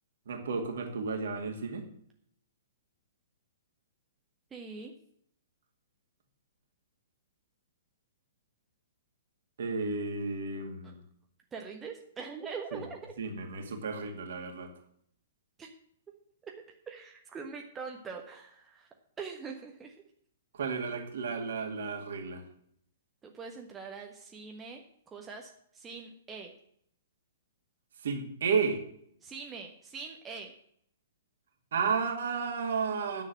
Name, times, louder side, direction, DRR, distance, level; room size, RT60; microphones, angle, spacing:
voice 1, 0.3-1.8 9.6-11.0 12.7-12.8 13.2-14.7 20.5-22.4 28.0-28.8 31.7-33.2, right 5 dB, 55° right, 4 dB, 2.3 m, -32 dB
voice 2, 4.5-4.9 10.8-10.9 11.5-13.1 15.6-15.7 16.4-16.5 16.9-18.9 19.2-20.0 23.2-26.5 29.2-30.5, right 5 dB, 15° right, 1 dB, 1.3 m, -43 dB
9.8 x 7.3 x 7.6 m, 0.68 s
figure-of-eight pair, 115°, 0 cm